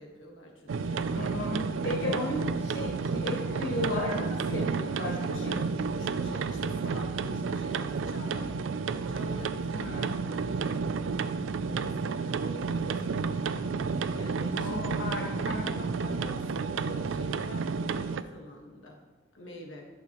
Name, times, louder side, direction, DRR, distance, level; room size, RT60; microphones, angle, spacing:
voice 1, 0.0-1.1 4.4-4.7 5.0-8.5 9.1-10.9 11.5-13.7 14.2-14.8 15.5-19.0 19.3-19.8, left 1 dB, 75° left, 1 dB, 1.6 m, -46 dB
sound 1, 0.7-18.2, right 5 dB, 75° right, 0.4 m, -31 dB
voice 2, 1.1-5.1 5.4-5.5 9.7-10.2 14.5-15.7, left 1 dB, 55° left, -3 dB, 1.2 m, -34 dB
11.5 x 6.7 x 3.0 m, 1.3 s
head